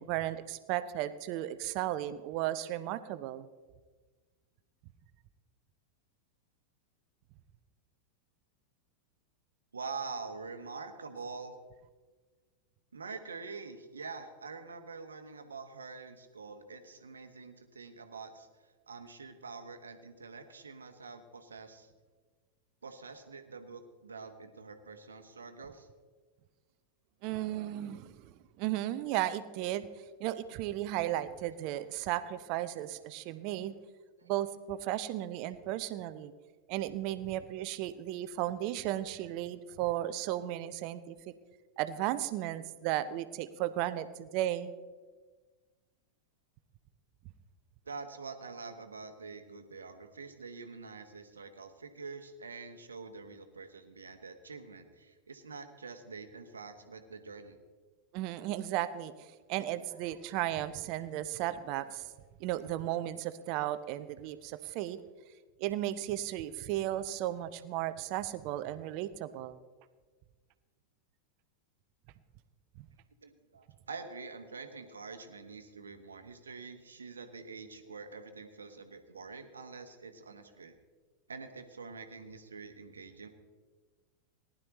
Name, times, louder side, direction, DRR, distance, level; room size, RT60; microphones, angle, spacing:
voice 1, 0.0-3.5 27.2-29.9 30.2-33.7 34.2-36.3 36.7-41.3 41.8-44.7 58.1-62.1 62.4-65.0 65.6-69.6 72.8-72.9, right 13 dB, 45° right, 13 dB, 0.7 m, -35 dB
voice 2, 9.7-11.6 12.9-21.9 22.8-25.9 31.7-31.8 34.2-34.3 47.8-57.6 73.2-80.8 81.3-83.3, right 4 dB, 75° right, 8 dB, 1.1 m, -46 dB
19.0 x 11.5 x 3.1 m, 1.4 s
figure-of-eight pair, 90°, 0 cm